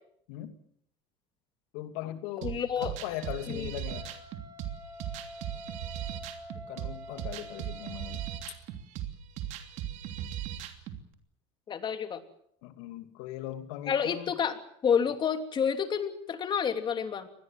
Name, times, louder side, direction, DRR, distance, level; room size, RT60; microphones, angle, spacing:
voice 1, 1.7-4.1 6.7-8.6 12.6-14.3, left 13 dB, 80° left, 8 dB, 2.7 m, -39 dB
voice 2, 2.4-3.0 3.5-3.7 11.7-12.2 13.9-14.6 14.8-17.3, left 7 dB, 35° left, 7 dB, 3.0 m, -29 dB
sound 1, 2.4-11.0, right 11 dB, 65° right, 3.0 m, -38 dB
Wind instrument woodwind instrument, 3.8-8.5, left 1 dB, 30° right, 7.6 m, -47 dB
25.0 x 20.0 x 7.7 m, 0.69 s
supercardioid pair, 110°, 14 cm